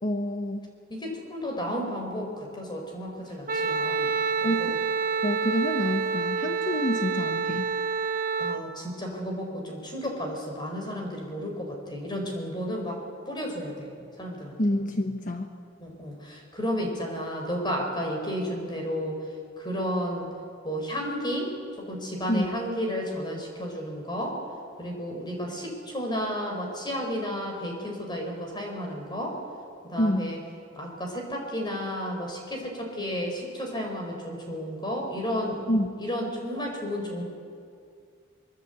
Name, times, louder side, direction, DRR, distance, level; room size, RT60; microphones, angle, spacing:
voice 1, 0.0-0.6 4.4-4.8 5.2-7.7 14.6-15.5 22.3-22.5 30.0-30.3 35.7-35.9, left 1 dB, 45° left, 5 dB, 1.2 m, -27 dB
voice 2, 0.9-4.8 8.4-13.0 13.3-14.6 15.8-19.2 19.6-20.3 20.6-24.4 24.8-29.4 29.8-30.4 30.7-35.6 36.0-37.2, equal, 25° left, 1 dB, 5.1 m, -32 dB
Wind instrument woodwind instrument, 3.5-8.6, right 5 dB, 45° right, 1.1 m, -28 dB
24.0 x 22.5 x 8.3 m, 2.3 s
head